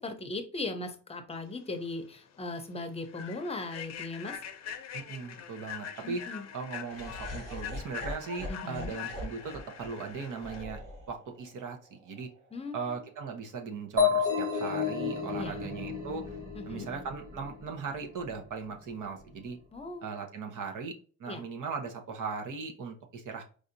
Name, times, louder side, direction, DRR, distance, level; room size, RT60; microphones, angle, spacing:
voice 1, 0.0-4.4 6.0-6.5 8.5-8.9 12.5-13.0 15.3-15.6 16.5-16.9 19.7-20.1 21.3-21.4, left 2 dB, 20° left, 6 dB, 0.6 m, -38 dB
Human voice / Train, 1.8-1.9 2.3-2.5 3.0-10.6, left 9 dB, 55° left, 0.6 m, -43 dB
voice 2, 4.9-6.2 6.5-10.8 11.1-12.3 12.7-16.4 16.6-19.6 20.0-23.4, right 5 dB, 70° right, 4 dB, 1.0 m, -38 dB
Laughter, 6.9-13.0, left 1 dB, 90° right, 2.0 m, -43 dB
sound 1, 14.0-17.6, left 6 dB, 25° right, 1.2 m, -30 dB
4.8 x 2.7 x 2.6 m, 0.39 s
cardioid pair, 145°, 32 cm